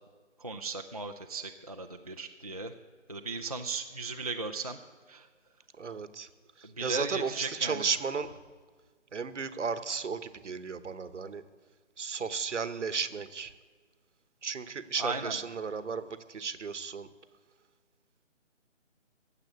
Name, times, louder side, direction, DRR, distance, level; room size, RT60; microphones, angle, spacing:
voice 1, 0.4-2.7 3.1-4.8 5.1-5.3 6.6-7.9 15.0-15.4, right 3 dB, 30° right, 4 dB, 0.4 m, -36 dB
voice 2, 5.8-6.3 6.6-8.3 9.1-11.4 12.0-13.5 14.4-17.1, right 5 dB, 70° right, 13 dB, 1.1 m, -34 dB
16.5 x 7.6 x 8.3 m, 1.6 s
figure-of-eight pair, 160°, 37 cm